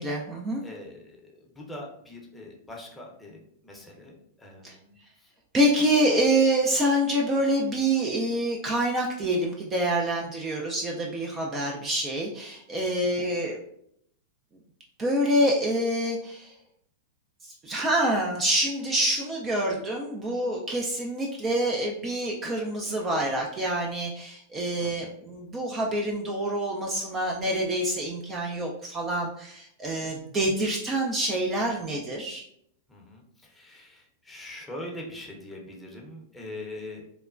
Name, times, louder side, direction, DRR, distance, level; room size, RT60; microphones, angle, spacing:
voice 1, 0.0-0.6 4.6-4.7 5.5-13.6 15.0-16.5 17.6-32.4, right 1 dB, 25° right, 0 dB, 0.4 m, -26 dB
voice 2, 0.6-5.3 12.8-13.0 24.8-25.1 32.9-37.0, left 1 dB, 10° left, -2 dB, 0.7 m, -43 dB
3.1 x 2.1 x 2.4 m, 0.70 s
hypercardioid pair, 110°, 0 cm